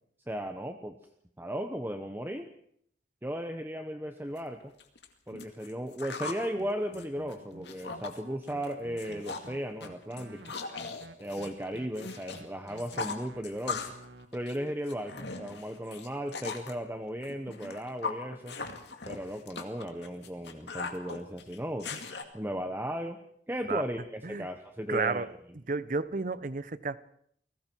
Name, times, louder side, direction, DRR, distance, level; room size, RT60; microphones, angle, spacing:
voice 1, 0.3-1.0 1.4-2.5 3.2-4.7 5.3-10.5 11.2-13.8 14.3-18.6 19.1-21.9 22.3-23.2 23.5-25.3, equal, 10° right, 6 dB, 1.0 m, -36 dB
sound 1, 4.4-4.5 4.8-6.4 6.8-8.2 8.5-8.7 9.0-9.5 9.8-12.4 12.7-14.0 14.3-16.7 17.2-22.2, left 4 dB, 70° left, 2.3 m, -39 dB
sound 2, 6.6-14.3, right 2 dB, 80° right, 1.8 m, -52 dB
voice 2, 24.9-25.3 25.7-27.0, right 4 dB, 45° right, 16 dB, 0.8 m, -31 dB
29.5 x 20.0 x 4.6 m, 0.67 s
head